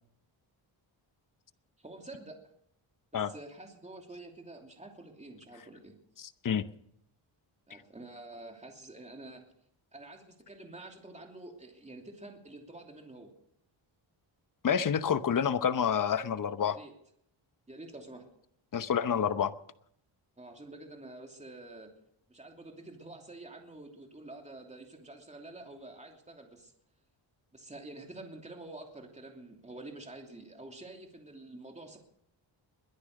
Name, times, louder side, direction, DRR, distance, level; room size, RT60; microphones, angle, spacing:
voice 1, 1.8-2.4 3.1-5.9 7.7-9.4 9.9-13.3 16.7-16.9 17.7-18.2 20.4-21.9 22.3-26.7 27.5-32.0, right 2 dB, 15° right, 2.9 m, -48 dB
voice 2, 6.2-6.6 14.6-16.8 18.7-19.5, left 7 dB, 40° left, 0.9 m, -28 dB
22.0 x 10.0 x 6.5 m
wide cardioid pair, 125°, 47 cm